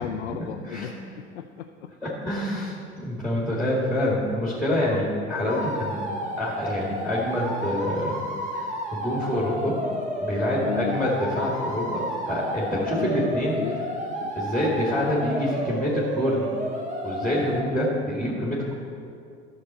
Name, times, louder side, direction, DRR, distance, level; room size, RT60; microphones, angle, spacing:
voice 1, 0.0-1.9 2.5-2.7 4.9-5.0 10.6-11.1 12.7-13.9 14.2-14.3, left 9 dB, 85° left, 6 dB, 0.5 m, -35 dB
voice 2, 2.0-2.7 3.0-6.0 6.4-8.2 8.5-9.8 10.2-13.6 14.3-16.5 17.0-18.7, left 1 dB, ahead, -4 dB, 2.1 m, -26 dB
sound 1, 5.5-17.6, equal, 20° right, 1.7 m, -31 dB
13.0 x 6.7 x 4.3 m, 2.4 s
figure-of-eight pair, 70°, 33 cm